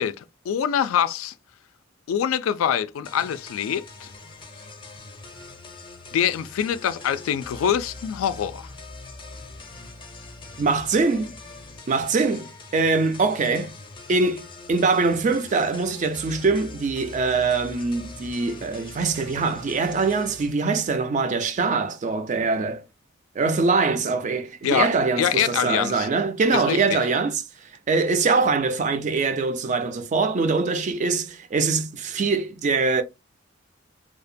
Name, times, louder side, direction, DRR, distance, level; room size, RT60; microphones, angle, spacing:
voice 1, 0.0-1.3 2.1-4.1 6.1-8.7 24.6-24.9 25.2-26.1 26.5-27.0, left 9 dB, 85° left, 0.3 m, -24 dB
sound 1, 3.0-20.5, left 3 dB, 25° left, 0.5 m, -43 dB
voice 2, 10.6-11.4 11.9-13.7 14.1-22.8 23.4-27.4 27.9-33.0, right 4 dB, 40° right, 0.3 m, -23 dB
2.7 x 2.2 x 2.5 m
head